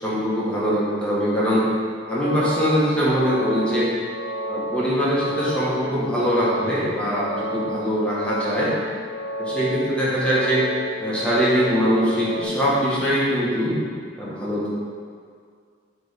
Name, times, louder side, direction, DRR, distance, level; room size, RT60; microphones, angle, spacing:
voice 1, 0.0-1.7 2.1-3.9 4.5-8.8 9.4-10.6 11.0-13.8 14.2-14.7, equal, 5° left, -9 dB, 1.7 m, -22 dB
sound 1, 1.9-12.4, left 1 dB, 85° left, 0.8 m, -31 dB
7.6 x 3.6 x 5.3 m, 2.1 s
head